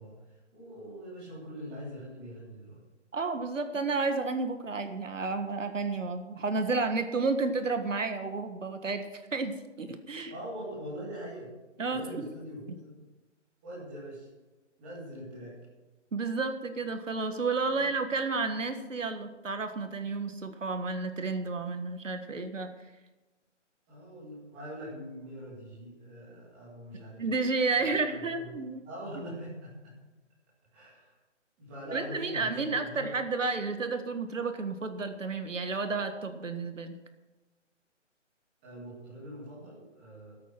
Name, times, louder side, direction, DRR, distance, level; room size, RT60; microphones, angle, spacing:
voice 1, 0.0-2.8 10.3-11.5 11.9-13.0 13.6-14.3 14.8-15.5 17.7-17.9 23.9-27.2 27.7-28.5 28.8-30.0 30.7-31.1 31.6-33.1 38.6-40.3, equal, 5° right, -8 dB, 2.3 m, -43 dB
voice 2, 3.1-10.3 11.8-12.3 16.1-22.7 27.2-28.8 31.9-37.0, right 3 dB, 80° right, 7 dB, 1.8 m, -31 dB
14.5 x 8.5 x 6.1 m, 1.1 s
hypercardioid pair, 180°, 37 cm